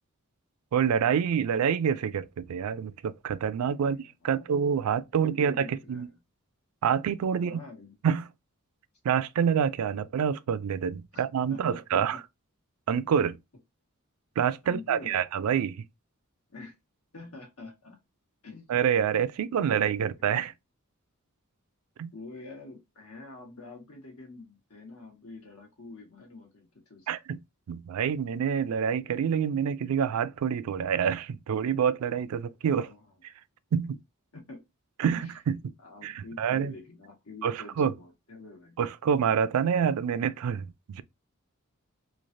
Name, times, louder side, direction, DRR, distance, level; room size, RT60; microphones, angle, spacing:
voice 1, 0.7-6.1 6.8-7.6 8.0-8.3 9.0-12.2 12.9-13.4 14.4-15.8 18.7-20.5 22.0-22.1 27.1-27.4 27.7-32.9 33.7-34.0 35.0-35.7 36.0-36.7 37.4-37.9 38.8-41.0, right 7 dB, 80° right, 0.3 m, -27 dB
voice 2, 3.5-4.6 5.1-6.2 7.4-8.0 11.1-11.2 11.5-12.2 14.6-15.2 16.5-16.7 17.1-18.0 18.4-18.7 19.6-20.5 22.1-27.1 32.6-33.0 34.3-34.6 35.2-35.4 35.8-38.8, left 3 dB, 85° left, 1.3 m, -47 dB
3.2 x 2.3 x 2.5 m
head